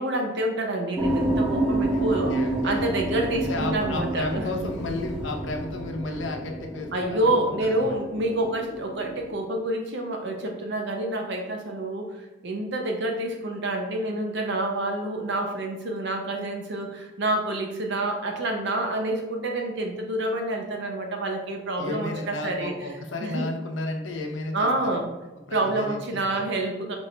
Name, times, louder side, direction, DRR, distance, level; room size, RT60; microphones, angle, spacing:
voice 1, 0.0-4.7 6.9-22.9 23.2-23.5 24.5-25.1 25.5-27.0, right 1 dB, 65° right, 2 dB, 0.7 m, -28 dB
sound 1, 1.0-9.3, right 1 dB, 5° right, 0.7 m, -29 dB
voice 2, 1.9-2.8 3.3-7.2 7.6-7.9 21.8-24.7 25.5-26.4, left 2 dB, 70° left, 3 dB, 0.6 m, -33 dB
4.4 x 2.6 x 3.3 m, 1.2 s
head